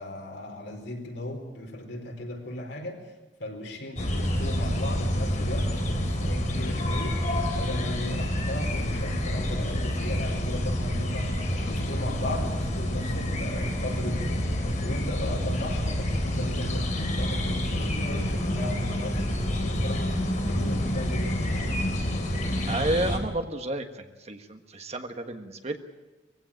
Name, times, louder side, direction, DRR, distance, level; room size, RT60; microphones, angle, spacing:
voice 1, 0.0-3.0 3.4-11.3 11.6-21.9, left 1 dB, 85° left, 2 dB, 4.6 m, -36 dB
sound 1, 4.0-23.2, left 1 dB, 45° left, 3.6 m, -28 dB
voice 2, 22.7-25.8, right 1 dB, 35° right, 6 dB, 1.5 m, -31 dB
22.0 x 16.0 x 8.9 m, 1.2 s
head